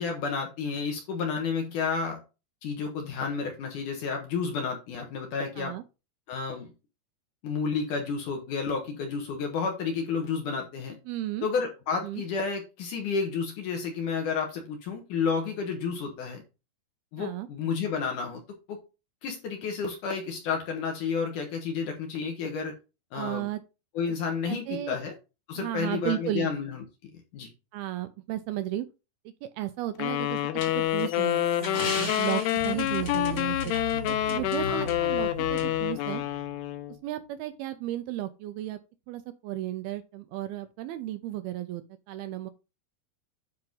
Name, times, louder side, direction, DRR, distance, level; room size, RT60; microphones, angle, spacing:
voice 1, 0.0-2.2 2.6-5.7 6.3-6.7 7.4-11.0 11.4-16.4 17.1-18.4 18.7-18.8 19.2-22.7 23.1-23.5 23.9-25.1 25.5-27.5 34.6-34.9, left 5 dB, 60° left, 2.4 m, -31 dB
voice 2, 11.1-11.5 12.0-12.2 17.2-17.5 23.1-23.6 24.1-24.2 24.5-25.0 25.6-26.5 27.7-28.9 29.4-30.4 30.7-33.8 34.1-36.2 37.0-38.8 39.1-42.5, right 14 dB, 80° right, 2.4 m, -34 dB
sound 1, 30.0-37.0, left 13 dB, 85° left, 2.7 m, -28 dB
sound 2, 30.6-34.6 34.9-35.0 35.6-35.7, left 3 dB, 35° left, 2.1 m, -37 dB
sound 3, 32.6-37.2, right 3 dB, 55° right, 2.0 m, -40 dB
9.6 x 4.7 x 3.9 m
omnidirectional pair, 4.8 m